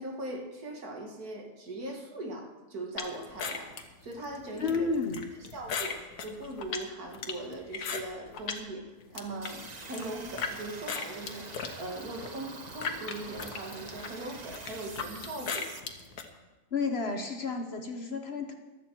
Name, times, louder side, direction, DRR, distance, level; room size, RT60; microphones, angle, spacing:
voice 1, 0.0-4.9 5.5-11.5 11.8-15.7, right 1 dB, 70° right, 2 dB, 2.3 m, -40 dB
sound 1, 3.0-8.6 9.0-10.5 10.9-16.3, left 5 dB, 75° left, 1.7 m, -38 dB
voice 2, 4.6-5.2 16.7-18.5, left 4 dB, 45° left, 5 dB, 1.1 m, -31 dB
sound 2, 9.4-15.8, right 3 dB, 30° right, 0.9 m, -45 dB
15.5 x 12.5 x 4.5 m, 1.2 s
omnidirectional pair, 1.6 m